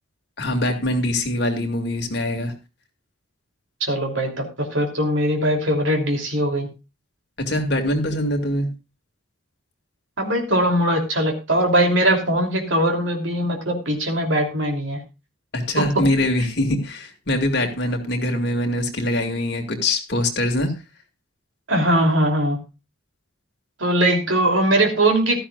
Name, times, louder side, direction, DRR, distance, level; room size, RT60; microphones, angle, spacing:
voice 1, 0.4-2.5 7.4-8.7 15.5-20.7, left 1 dB, 55° left, 3 dB, 2.1 m, -23 dB
voice 2, 3.8-6.7 10.2-15.0 15.8-16.0 21.7-22.6 23.8-25.4, right 1 dB, 65° right, 3 dB, 3.0 m, -20 dB
15.0 x 12.5 x 2.4 m, 0.27 s
head